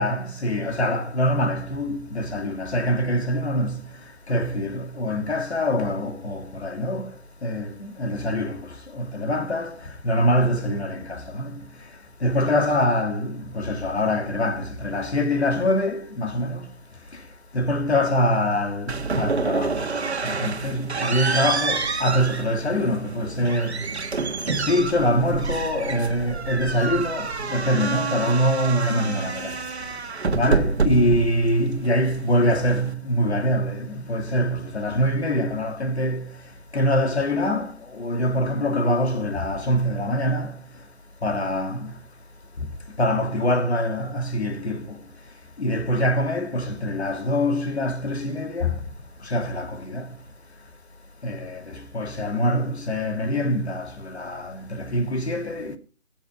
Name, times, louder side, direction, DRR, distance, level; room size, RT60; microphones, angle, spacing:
voice 1, 0.0-3.8 4.3-7.1 7.4-8.6 8.9-9.7 10.0-11.5 12.2-16.6 17.5-19.9 20.2-23.8 24.5-29.5 30.3-36.3 36.7-40.5 41.2-41.9 43.0-44.8 45.6-48.8 49.3-50.0 51.2-51.6 51.9-55.8, equal, 75° left, 2.6 m, -24 dB
sound 1, 18.9-32.9, right 4 dB, 75° right, 1.6 m, -28 dB
17.0 x 7.3 x 5.3 m
figure-of-eight pair, 170°, 33 cm